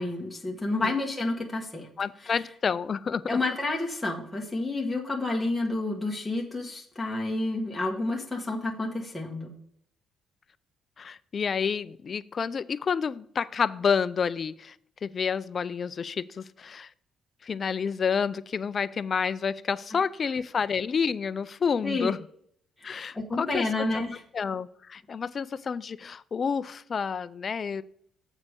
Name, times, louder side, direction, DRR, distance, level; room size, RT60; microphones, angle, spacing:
voice 1, 0.0-1.9 3.3-9.5 21.8-22.1 22.8-24.2, left 2 dB, 5° left, -2 dB, 1.5 m, -30 dB
voice 2, 2.0-3.4 11.0-14.8 15.0-16.9 17.4-22.2 22.8-24.0 24.3-27.8, left 6 dB, 40° left, 15 dB, 0.4 m, -29 dB
7.3 x 4.8 x 6.6 m, 0.65 s
cardioid pair, 105°, 0 cm